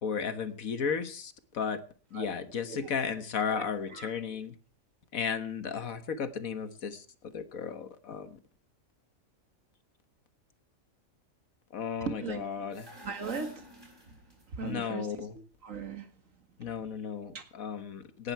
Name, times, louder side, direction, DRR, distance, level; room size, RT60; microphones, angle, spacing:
voice 1, 0.0-1.8 2.1-4.6 5.1-7.0 7.3-8.4 11.7-12.9 14.6-15.4 16.6-18.3, left 6 dB, 85° left, 11 dB, 1.8 m, -34 dB
voice 2, 2.7-3.1 3.5-4.1 12.1-12.4 13.0-13.7 14.1-14.2 14.5-16.1 17.3-17.4, right 5 dB, 70° right, 8 dB, 2.2 m, -39 dB
sound 1, 12.7-14.7, left 1 dB, 15° right, 4.8 m, -49 dB
17.5 x 12.0 x 4.6 m, 0.39 s
omnidirectional pair, 1.4 m